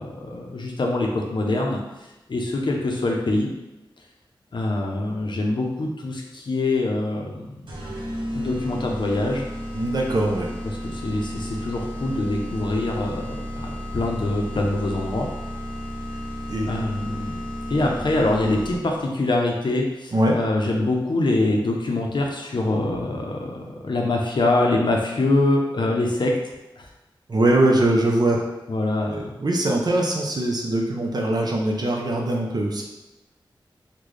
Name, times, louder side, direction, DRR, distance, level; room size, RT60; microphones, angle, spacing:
voice 1, 0.0-3.5 4.5-8.0 8.3-9.5 10.6-15.3 16.7-17.4 17.7-26.3 26.8-26.9 28.7-29.3, left 2 dB, 60° left, 0 dB, 0.6 m, -24 dB
sound 1, 7.7-19.0, equal, 75° right, 0.8 m, -33 dB
voice 2, 9.7-10.5 16.5-16.7 20.1-20.3 27.3-28.4 29.0-32.8, right 1 dB, 50° right, 0 dB, 0.6 m, -22 dB
3.8 x 2.2 x 3.2 m, 1.0 s
wide cardioid pair, 100°, 9 cm